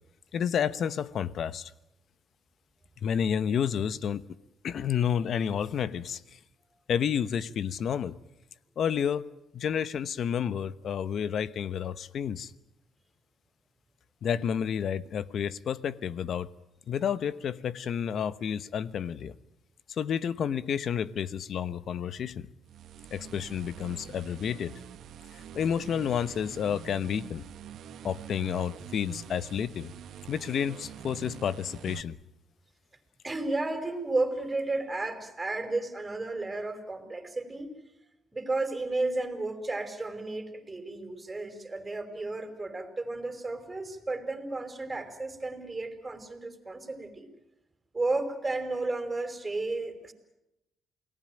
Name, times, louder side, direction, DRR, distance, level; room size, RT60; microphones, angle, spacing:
voice 1, 0.3-1.7 3.0-4.2 4.6-6.4 6.9-8.1 8.8-9.3 9.5-12.5 14.2-16.5 16.9-19.3 19.9-22.5 23.1-24.7 25.3-27.4 28.0-29.9 30.3-32.2, left 8 dB, 65° left, 17 dB, 1.0 m, -30 dB
voice 2, 14.3-14.6 33.2-37.7 38.3-47.3 47.9-50.1, right 2 dB, 20° right, 7 dB, 5.0 m, -33 dB
sound 1, 22.6-32.0, right 9 dB, 75° right, 1.4 m, -46 dB
28.5 x 19.0 x 9.0 m, 0.88 s
cardioid pair, 90°, 0 cm